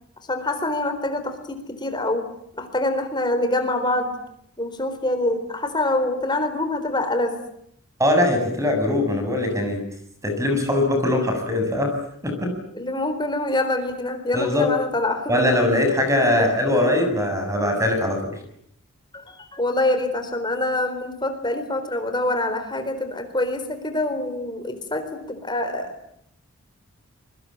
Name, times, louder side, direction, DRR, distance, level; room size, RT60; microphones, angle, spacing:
voice 1, 0.2-2.3 2.6-4.2 4.6-7.4 12.7-15.5 16.2-16.5 19.1-25.9, left 2 dB, 20° left, 8 dB, 4.1 m, -25 dB
voice 2, 8.0-9.8 10.2-12.0 12.2-12.5 14.3-14.7 15.3-18.4, left 1 dB, 15° right, 5 dB, 7.1 m, -21 dB
27.0 x 23.5 x 8.8 m, 0.71 s
head